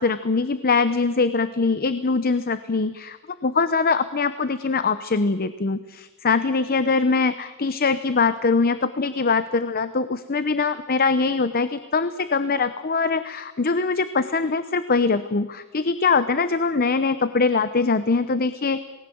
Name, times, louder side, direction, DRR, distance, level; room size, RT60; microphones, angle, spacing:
voice 1, 0.0-18.8, left 4 dB, 45° left, 12 dB, 0.8 m, -22 dB
27.5 x 19.5 x 7.8 m, 1.2 s
head